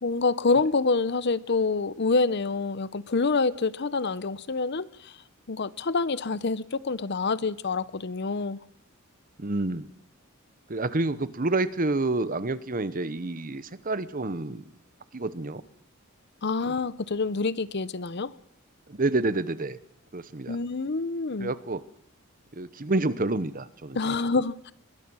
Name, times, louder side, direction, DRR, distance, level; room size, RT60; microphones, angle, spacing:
voice 1, 0.0-5.1 5.5-8.6 16.4-18.3 20.5-21.5 24.0-24.7, left 4 dB, 55° left, 0.7 m, -27 dB
voice 2, 9.4-9.9 10.7-14.6 15.1-15.6 16.7-16.8 18.9-19.8 20.1-20.6 21.4-21.8 22.5-24.2, right 2 dB, 40° right, 1.0 m, -28 dB
22.5 x 21.5 x 6.3 m
head